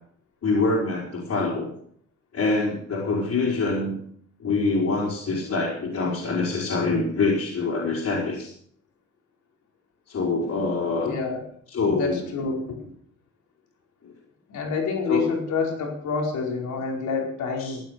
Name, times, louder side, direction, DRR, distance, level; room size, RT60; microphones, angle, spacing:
voice 1, 0.4-1.7 2.3-4.0 4.4-8.5 10.1-11.2 11.7-12.2 15.1-15.3 17.6-17.8, left 3 dB, 55° left, -5 dB, 5.4 m, -25 dB
voice 2, 11.0-11.4 11.9-12.8 14.5-17.8, left 4 dB, 75° left, 0 dB, 5.1 m, -27 dB
15.5 x 9.2 x 6.8 m, 0.64 s
cardioid pair, 90°, 30 cm